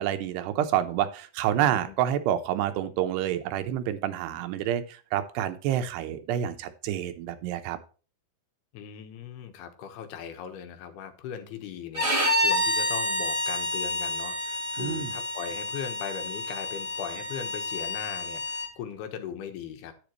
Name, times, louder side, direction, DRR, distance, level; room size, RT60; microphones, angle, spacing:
voice 1, 0.0-7.8 14.8-15.1, right 11 dB, 85° right, 9 dB, 2.9 m, -28 dB
voice 2, 1.6-1.9 8.7-19.9, left 8 dB, 75° left, 7 dB, 3.1 m, -39 dB
Bowed string instrument, 11.9-18.7, left 1 dB, 20° right, 0.8 m, -29 dB
10.5 x 9.0 x 3.1 m, 0.37 s
omnidirectional pair, 4.8 m